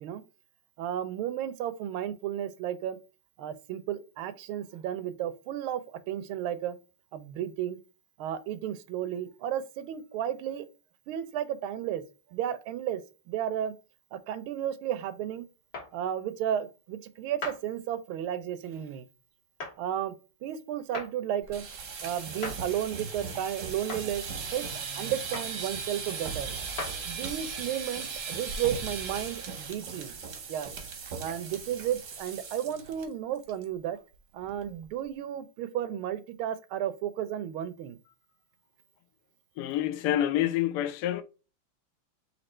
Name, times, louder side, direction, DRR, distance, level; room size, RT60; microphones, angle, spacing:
voice 1, 0.8-3.0 3.4-6.8 7.1-7.8 8.2-10.7 11.1-12.0 12.3-13.0 13.3-13.7 14.1-15.5 15.9-19.1 19.8-20.1 20.4-21.6 22.0-26.5 27.0-30.1 30.5-30.7 31.2-34.0 34.3-38.0, right 10 dB, 80° right, 1.4 m, -33 dB
sound 1, 15.7-15.9 17.4-17.6 19.6-19.8 20.9-21.1 22.4-22.6 23.9-24.1 25.3-25.6 26.8-27.0, left 3 dB, 50° left, 1.7 m, -36 dB
sound 2, 21.4-33.0 33.4-33.6 34.0-34.1 34.4-34.8, right 5 dB, 55° right, 0.9 m, -38 dB
voice 2, 39.6-41.2, left 12 dB, 80° left, 0.9 m, -27 dB
4.3 x 2.7 x 4.2 m
omnidirectional pair, 2.3 m